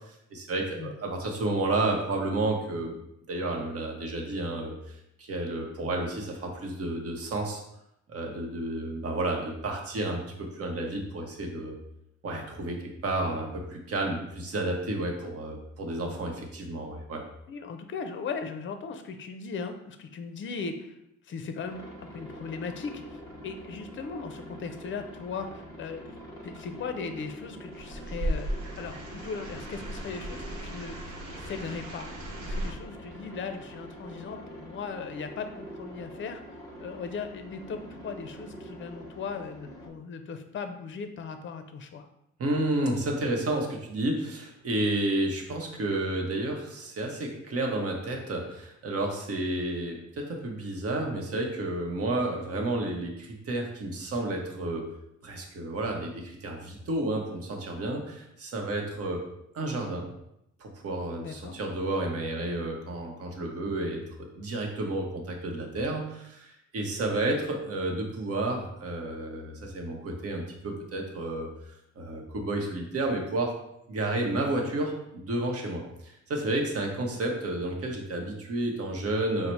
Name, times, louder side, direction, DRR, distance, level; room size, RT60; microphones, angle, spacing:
voice 1, 0.1-3.0 3.3-7.6 8.1-11.8 12.2-17.2 42.4-54.9 55.2-59.2 59.5-60.1 60.6-64.0 64.4-71.5 72.0-73.5 73.9-79.5, right 2 dB, 50° right, 1 dB, 0.9 m, -31 dB
voice 2, 17.5-20.9 21.2-21.8 22.1-23.2 23.4-26.0 26.4-28.5 28.8-31.0 31.4-32.1 32.4-36.4 36.8-42.1 61.2-61.6, left 5 dB, 40° left, 7 dB, 0.5 m, -38 dB
Aircraft, 21.6-39.9, equal, 10° left, 1.1 m, -45 dB
Rain In The City, 27.7-32.7, right 1 dB, 85° right, 0.9 m, -36 dB
3.9 x 2.1 x 4.4 m, 0.80 s
cardioid pair, 90°, 30 cm